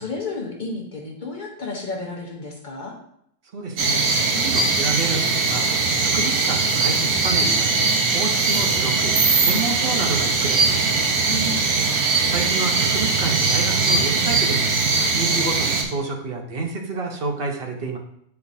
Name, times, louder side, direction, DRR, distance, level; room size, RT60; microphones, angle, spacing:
voice 1, 0.0-3.0 11.3-11.8, left 3 dB, 35° left, -1 dB, 1.0 m, -32 dB
voice 2, 3.5-4.0 4.3-5.7 6.0-7.7 8.1-10.9 12.3-14.7 15.0-18.0, right 3 dB, 45° right, 2 dB, 0.9 m, -29 dB
sound 1, 3.8-15.8, right 4 dB, 70° right, 1.3 m, -20 dB
8.8 x 4.6 x 2.7 m, 0.73 s
omnidirectional pair, 1.5 m